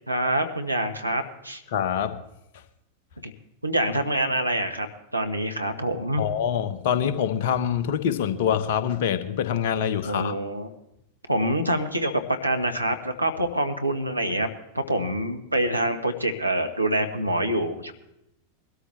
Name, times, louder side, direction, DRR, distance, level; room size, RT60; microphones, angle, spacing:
voice 1, 0.1-1.6 3.2-3.3 3.6-4.9 5.1-6.2 10.0-10.7 11.3-14.5 14.7-17.9, right 1 dB, 85° right, 5 dB, 1.3 m, -26 dB
voice 2, 1.7-2.2 6.2-10.4, left 8 dB, 55° left, 11 dB, 1.1 m, -25 dB
21.5 x 13.0 x 3.2 m, 0.83 s
figure-of-eight pair, 90°, 0 cm